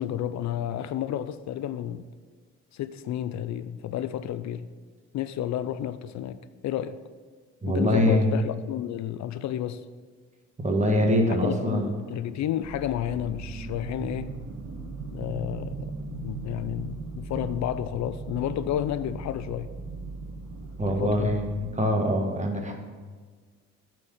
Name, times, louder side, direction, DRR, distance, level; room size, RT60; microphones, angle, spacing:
voice 1, 0.0-2.1 2.7-4.7 5.1-7.0 7.7-9.9 11.4-14.3 15.1-15.9 16.2-19.7 20.9-21.4, left 11 dB, 65° left, 0.5 m, -31 dB
voice 2, 7.6-8.3 10.6-11.9 20.8-22.7, equal, 25° right, 1.6 m, -24 dB
sound 1, 12.6-21.7, right 3 dB, 65° right, 1.4 m, -38 dB
9.6 x 4.5 x 6.5 m
cardioid pair, 90°, 30 cm